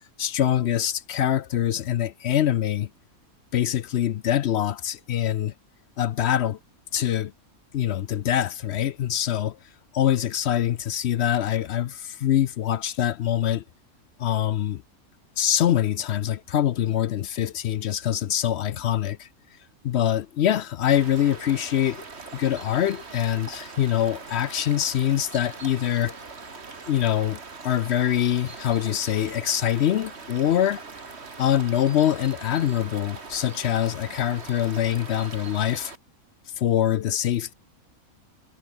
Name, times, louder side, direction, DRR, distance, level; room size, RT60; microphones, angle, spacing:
voice 1, 0.2-2.9 3.5-5.5 6.0-6.6 6.9-7.3 7.7-9.6 9.9-13.6 14.2-14.8 15.4-19.3 19.8-22.0 22.3-26.1 26.9-30.8 31.4-35.9 36.6-37.5, left 11 dB, 60° left, 0.7 m, -24 dB
sound 1, 20.9-35.9, right 4 dB, 45° right, 2.3 m, -41 dB
omnidirectional pair, 1.5 m